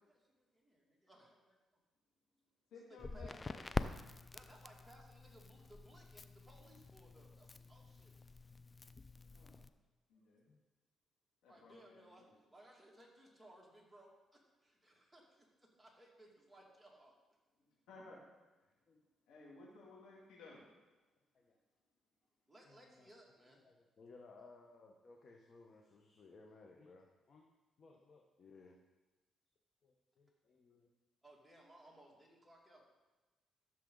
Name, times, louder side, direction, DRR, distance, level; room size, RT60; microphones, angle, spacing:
voice 1, 0.1-1.6 2.7-8.1 11.5-17.1 22.5-23.6 31.2-32.9, right 1 dB, 5° right, -3 dB, 2.6 m, -62 dB
voice 2, 2.7-3.6 9.3-9.6 10.1-10.4 11.4-12.3 17.9-18.2 19.3-20.7, left 3 dB, 85° left, -4 dB, 2.5 m, -57 dB
Crackle, 3.0-9.7, left 3 dB, 25° left, 0.4 m, -46 dB
voice 3, 22.7-23.1 23.6-27.4 27.8-28.8 29.8-30.9, left 3 dB, 45° left, 0 dB, 1.2 m, -61 dB
13.5 x 6.7 x 4.0 m, 1.2 s
cardioid pair, 90°, 0 cm